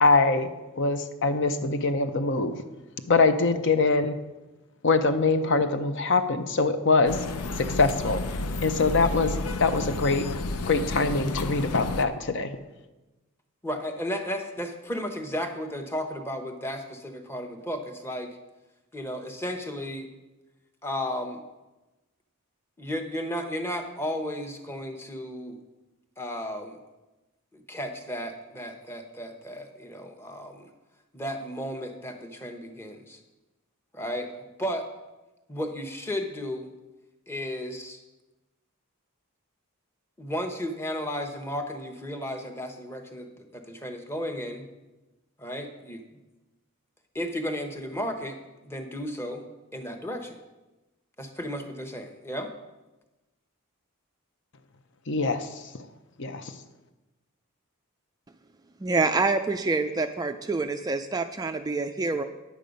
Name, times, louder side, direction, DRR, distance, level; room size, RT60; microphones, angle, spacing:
voice 1, 0.0-2.6 3.1-4.2 4.8-7.2 7.6-8.2 8.6-10.3 10.7-12.6 55.1-55.9 56.2-56.6, left 3 dB, 55° left, 9 dB, 0.7 m, -24 dB
sound 1, 7.1-12.0, left 3 dB, 90° left, 0.6 m, -31 dB
voice 2, 13.6-18.4 18.9-20.1 20.8-21.4 22.8-25.6 26.2-26.8 27.5-30.6 31.1-33.2 33.9-34.9 35.5-36.7 37.3-38.0 40.2-44.7 45.4-46.0 47.1-48.4 48.6-49.4 49.7-50.4 51.2-52.5, equal, 10° left, 5 dB, 0.9 m, -34 dB
voice 3, 58.8-62.2, right 3 dB, 15° right, 7 dB, 0.3 m, -26 dB
10.0 x 8.3 x 5.2 m, 1.1 s
head